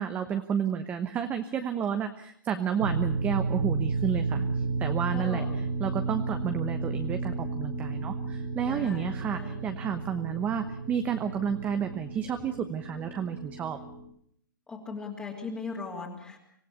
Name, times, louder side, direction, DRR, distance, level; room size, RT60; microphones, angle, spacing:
voice 1, 0.0-4.4 4.8-5.4 5.8-13.8, right 8 dB, 15° right, 8 dB, 1.1 m, -31 dB
sound 1, 2.8-14.0, right 3 dB, 80° right, 6.6 m, -32 dB
voice 2, 5.1-5.7 8.7-9.6 14.7-16.4, left 4 dB, 10° left, -1 dB, 2.8 m, -38 dB
26.0 x 15.5 x 8.3 m, 0.68 s
hypercardioid pair, 155°, 11 cm